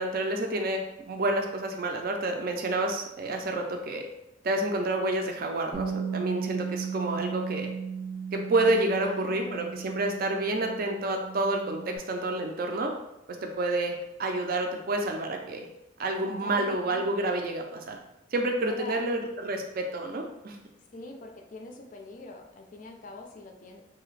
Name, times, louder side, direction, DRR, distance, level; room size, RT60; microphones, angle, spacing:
voice 1, 0.0-4.1 4.4-7.7 8.3-12.9 13.4-15.7 16.0-18.0 18.3-20.6, right 2 dB, 50° right, 3 dB, 0.4 m, -29 dB
Bass guitar, 5.7-12.0, right 6 dB, 5° left, 0.7 m, -36 dB
voice 2, 9.0-9.6 16.2-17.3 18.6-19.0 20.9-23.8, left 2 dB, 45° left, 3 dB, 0.4 m, -43 dB
2.8 x 2.4 x 3.2 m, 0.86 s
head